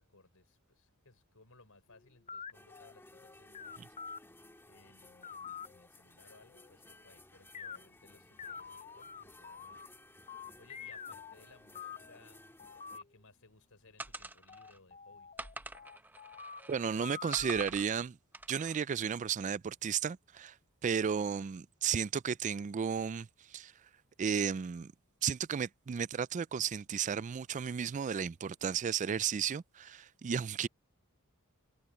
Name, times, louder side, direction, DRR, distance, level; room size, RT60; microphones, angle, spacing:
voice 1, 0.0-3.9 4.6-9.9 10.2-12.5 12.9-15.6, left 3 dB, 70° left, 6.3 m, -63 dB
sound 1, 1.9-4.2 5.0-5.9 6.5-7.1 7.5-7.8 8.4-9.9 10.3-11.3 11.7-12.2 12.6-13.0 14.5-17.7, left 6 dB, 30° left, 0.6 m, -47 dB
sound 2, 2.5-13.0, left 2 dB, 10° left, 2.2 m, -59 dB
sound 3, 14.0-14.8 15.4-16.9 17.3-17.9 18.3-18.8, right 2 dB, 10° right, 1.0 m, -46 dB
voice 2, 16.7-18.2 18.5-20.5 20.8-23.7 24.2-24.9 25.2-30.7, right 7 dB, 35° right, 0.3 m, -33 dB
head